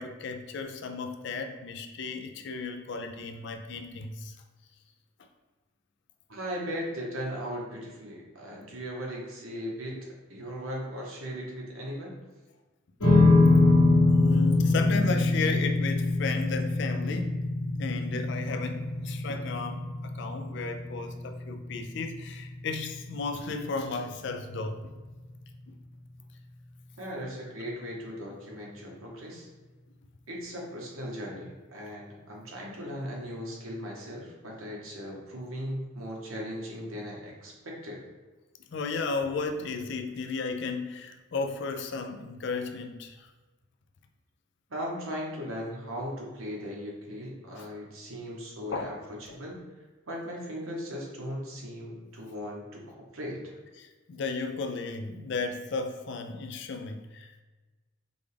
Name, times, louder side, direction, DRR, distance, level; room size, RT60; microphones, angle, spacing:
voice 1, 0.0-4.3 14.1-17.3 17.8-24.8 38.7-43.3 46.0-46.1 47.5-47.6 48.7-48.9 53.8-57.4, left 4 dB, 55° left, 6 dB, 0.4 m, -34 dB
voice 2, 6.3-12.1 27.0-29.5 30.3-38.0 44.7-48.9 49.3-49.6 50.1-53.5, equal, 75° right, -2 dB, 1.1 m, -38 dB
sound 1, 13.0-25.5, left 2 dB, 80° left, 1.4 m, -25 dB
5.2 x 2.4 x 3.3 m, 1.2 s
head